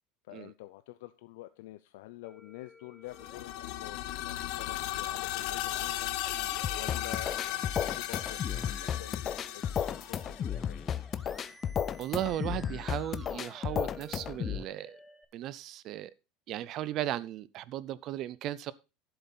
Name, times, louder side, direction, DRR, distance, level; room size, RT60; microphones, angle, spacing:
voice 1, 0.3-6.2 6.7-10.7, left 17 dB, 85° left, 0.6 m, -48 dB
Musical instrument, 2.2-15.2, equal, ahead, 0.9 m, -54 dB
sound 1, 3.1-10.9, left 14 dB, 65° left, 1.0 m, -36 dB
sound 2, 6.6-14.6, left 8 dB, 30° left, 0.5 m, -34 dB
voice 2, 12.0-15.0 15.3-16.1 16.5-18.7, right 13 dB, 45° right, 0.5 m, -36 dB
11.0 x 7.9 x 4.0 m
supercardioid pair, 145°, 0 cm